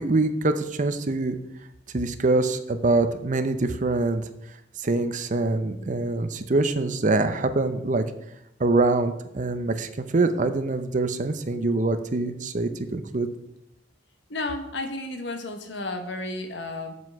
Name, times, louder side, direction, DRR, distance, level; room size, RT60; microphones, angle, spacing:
voice 1, 0.0-1.4 1.9-4.2 4.8-8.0 8.6-13.3, right 2 dB, 45° right, 10 dB, 0.7 m, -24 dB
voice 2, 14.3-16.9, left 2 dB, 70° left, 5 dB, 1.2 m, -32 dB
8.0 x 7.5 x 4.7 m, 0.81 s
head